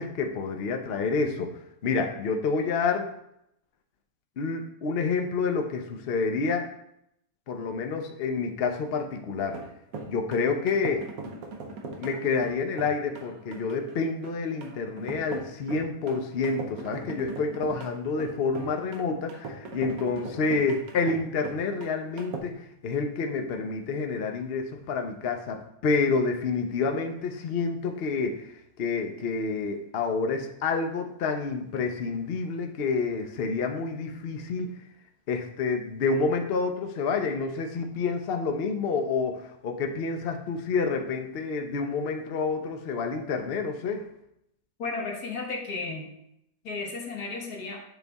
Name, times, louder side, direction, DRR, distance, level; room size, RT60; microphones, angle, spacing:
voice 1, 0.0-1.5 1.8-3.1 4.4-6.7 7.5-9.6 10.1-11.0 12.0-28.5 28.8-34.7 35.3-44.0, left 4 dB, 55° left, 4 dB, 0.7 m, -28 dB
sound 1, 9.4-22.4, right 3 dB, 65° right, 1.2 m, -40 dB
voice 2, 44.8-46.1 46.6-47.8, left 3 dB, 75° left, 1 dB, 1.7 m, -34 dB
8.1 x 3.9 x 3.5 m, 0.78 s
omnidirectional pair, 1.7 m